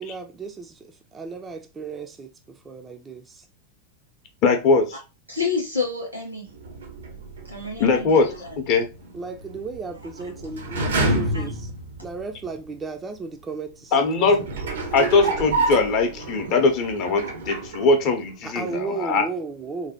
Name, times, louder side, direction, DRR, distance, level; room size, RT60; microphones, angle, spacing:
voice 1, 0.0-3.5 9.1-11.7 12.0-13.9 14.6-14.7 18.4-19.9, right 4 dB, 20° right, 0.3 m, -34 dB
voice 2, 4.4-5.0 7.8-8.9 13.9-14.4 14.9-19.2, left 4 dB, 40° left, 0.6 m, -21 dB
voice 3, 5.3-6.5 7.5-8.2 8.4-8.5 11.3-11.4, left 4 dB, 90° right, 1.3 m, -28 dB
sound 1, 6.5-12.6 13.2-13.3 14.1-18.4 18.7-18.8, right 2 dB, 65° right, 0.5 m, -30 dB
3.1 x 2.1 x 2.7 m
figure-of-eight pair, 90°, 0 cm